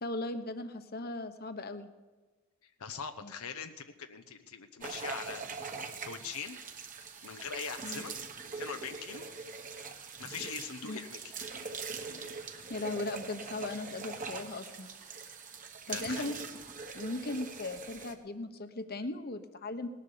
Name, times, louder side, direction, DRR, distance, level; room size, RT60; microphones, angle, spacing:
voice 1, 0.0-1.9 3.2-3.3 7.8-8.0 10.9-11.0 12.7-14.9 15.9-16.4 16.9-19.9, left 2 dB, 45° left, 9 dB, 1.1 m, -38 dB
voice 2, 2.8-5.4 6.0-6.6 7.2-8.1 8.5-9.2 10.2-11.2 15.9-16.2, left 6 dB, 75° left, 7 dB, 0.8 m, -41 dB
sound 1, 4.8-18.1, right 4 dB, 40° right, 1.4 m, -42 dB
19.0 x 11.0 x 6.8 m, 1.3 s
head